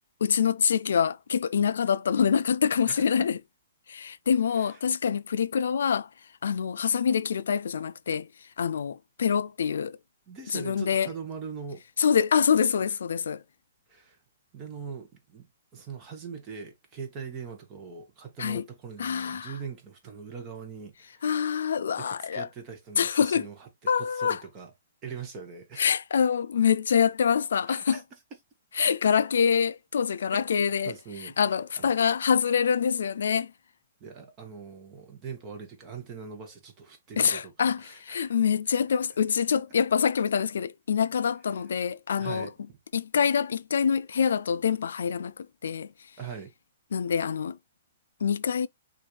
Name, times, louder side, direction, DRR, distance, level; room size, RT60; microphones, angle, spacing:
voice 1, 0.2-3.4 3.9-6.1 6.4-8.3 8.6-10.0 10.5-11.1 12.0-13.4 18.4-18.7 19.0-19.5 21.2-22.5 23.0-23.5 23.9-24.4 25.8-28.0 28.8-30.9 31.4-33.5 37.2-42.5 42.9-45.9 46.9-47.6 48.2-48.7, left 7 dB, 75° left, 0.3 m, -25 dB
voice 2, 2.9-3.3 4.5-4.8 10.3-11.8 13.9-14.2 14.5-15.5 15.7-21.3 21.9-24.7 25.0-25.9 27.7-28.0 30.3-30.4 30.8-31.3 31.8-31.9 34.0-38.3 42.2-42.8 46.2-46.5, right 6 dB, 20° right, 1.1 m, -41 dB
6.1 x 2.6 x 3.2 m
hypercardioid pair, 170°, 0 cm